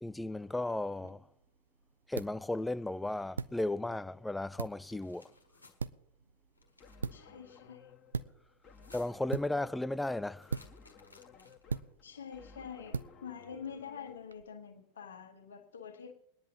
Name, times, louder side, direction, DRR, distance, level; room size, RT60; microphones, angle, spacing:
voice 1, 0.0-1.3 2.1-5.3 8.9-10.6, left 2 dB, 5° left, 0.3 m, -35 dB
sound 1, 1.0-14.4, right 5 dB, 75° right, 0.4 m, -43 dB
sound 2, 4.8-5.8 6.6-7.1 8.6-9.3 10.4-11.8, left 3 dB, 80° left, 1.6 m, -60 dB
sound 3, 6.8-14.1, left 6 dB, 20° left, 1.7 m, -57 dB
voice 2, 7.1-7.9 12.0-16.1, left 7 dB, 65° left, 1.5 m, -46 dB
22.5 x 10.5 x 2.9 m
figure-of-eight pair, 90°, 0 cm